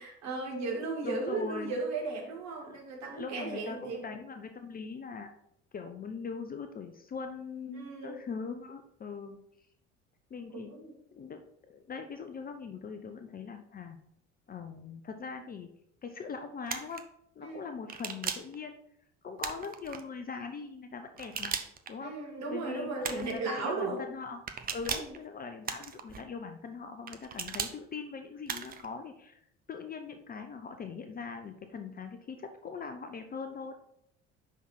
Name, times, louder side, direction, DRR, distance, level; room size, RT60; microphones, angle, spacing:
voice 1, 0.0-4.0 7.7-8.2 10.5-10.9 17.4-17.7 22.0-24.0 24.9-25.1, right 3 dB, 45° right, -2 dB, 2.3 m, -36 dB
voice 2, 1.0-1.7 2.6-2.8 3.1-5.3 5.7-9.4 10.3-10.7 11.1-14.0 14.5-15.7 16.0-17.0 17.4-18.8 19.2-21.6 21.9-22.1 22.5-24.4 24.7-29.4 29.7-33.7, left 5 dB, 25° left, 6 dB, 0.6 m, -41 dB
sound 1, 16.7-17.0 17.9-18.5 19.4-20.0 21.2-21.9 23.0-23.4 24.5-25.2 25.6-26.2 27.1-27.7 28.5-28.9, right 6 dB, 25° right, 0.7 m, -37 dB
5.8 x 5.5 x 4.4 m, 0.73 s
figure-of-eight pair, 55°, 37 cm